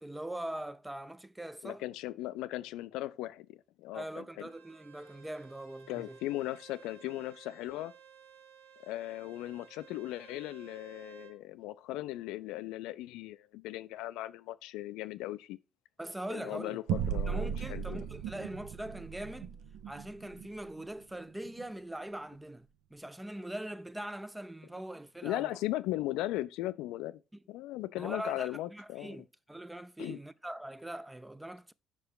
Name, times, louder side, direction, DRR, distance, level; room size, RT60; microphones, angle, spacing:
voice 1, 0.0-1.8 3.9-6.2 16.0-16.8 17.3-19.6 19.9-25.6 28.0-31.7, right 1 dB, 10° right, 0.4 m, -42 dB
voice 2, 1.6-4.5 5.9-7.9 8.8-15.6 16.3-18.0 25.2-27.2 27.5-29.2 30.0-30.2, left 16 dB, 65° left, 0.3 m, -38 dB
Bowed string instrument, 4.4-11.4, right 8 dB, 80° right, 1.2 m, -56 dB
sound 1, 16.9-21.7, right 8 dB, 65° right, 0.5 m, -37 dB
5.6 x 4.8 x 5.5 m
figure-of-eight pair, 45°, 0 cm